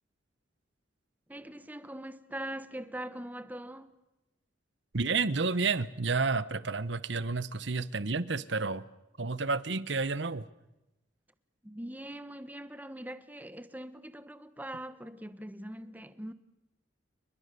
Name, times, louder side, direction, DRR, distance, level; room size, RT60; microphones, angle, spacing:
voice 1, 1.3-3.9 11.6-16.3, right 1 dB, 10° right, 1.2 m, -42 dB
voice 2, 4.9-8.8 9.2-10.5, right 4 dB, 60° right, 1.0 m, -30 dB
29.5 x 20.5 x 6.8 m
head